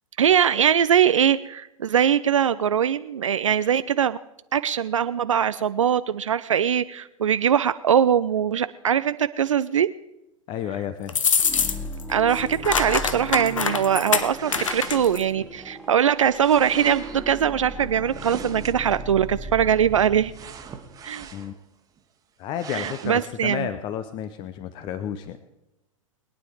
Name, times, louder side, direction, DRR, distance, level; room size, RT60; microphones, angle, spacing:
voice 1, 0.2-4.2 4.5-9.9 12.1-20.3 21.0-21.3 22.7-23.7, right 9 dB, 65° right, 13 dB, 0.5 m, -22 dB
voice 2, 10.5-11.2 21.3-21.5 22.4-25.4, left 9 dB, 25° left, 11 dB, 0.7 m, -31 dB
sound 1, 11.1-12.0 12.3-15.2, left 6 dB, 65° left, 1.1 m, -24 dB
sound 2, 11.4-21.1, right 1 dB, ahead, 1.7 m, -38 dB
sound 3, 14.3-15.5 16.4-17.3 18.1-19.0 20.3-21.6 22.0-22.1 22.5-23.2, right 7 dB, 20° right, 1.4 m, -41 dB
22.0 x 9.5 x 4.7 m, 0.90 s
figure-of-eight pair, 100°, 17 cm